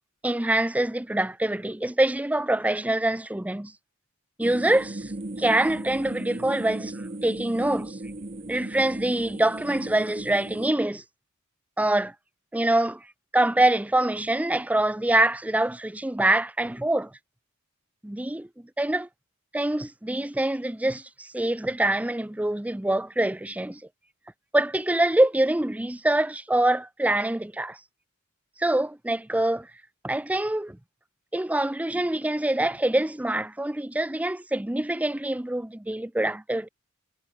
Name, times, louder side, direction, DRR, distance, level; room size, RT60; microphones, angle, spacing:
voice 1, 0.2-3.7 4.4-5.1 5.4-8.0 8.5-11.0 11.8-12.1 12.5-13.1 13.3-17.1 18.0-18.5 18.8-19.1 19.5-23.8 24.5-27.8 28.6-29.7 30.0-30.8 31.3-36.7, right 1 dB, 5° right, 0.5 m, -25 dB
sound 1, 4.4-10.7, right 2 dB, 30° right, 1.1 m, -37 dB
head